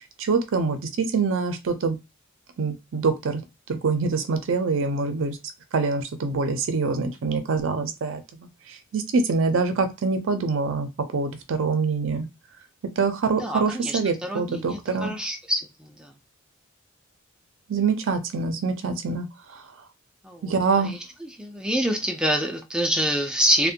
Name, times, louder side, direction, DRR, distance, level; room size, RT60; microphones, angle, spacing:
voice 1, 0.2-2.0 2.6-3.4 3.7-5.4 5.7-8.2 8.9-12.3 13.0-15.1 17.7-19.3 19.5-19.6 20.4-21.0, right 4 dB, 65° right, 8 dB, 0.5 m, -25 dB
voice 2, 13.4-15.6 16.0-16.1 20.2-20.6 20.8-21.0 21.4-23.7, equal, 5° right, 3 dB, 0.3 m, -26 dB
2.5 x 2.1 x 2.7 m, 0.23 s
head